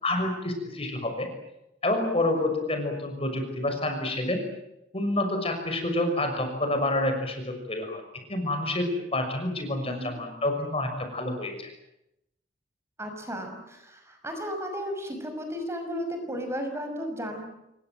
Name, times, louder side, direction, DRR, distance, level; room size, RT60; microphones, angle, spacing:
voice 1, 0.0-1.3 1.8-4.4 4.9-8.0 8.3-11.7, left 1 dB, 35° left, 5 dB, 6.2 m, -28 dB
voice 2, 13.0-17.5, equal, 15° right, 4 dB, 5.8 m, -34 dB
28.0 x 23.5 x 7.7 m, 0.85 s
head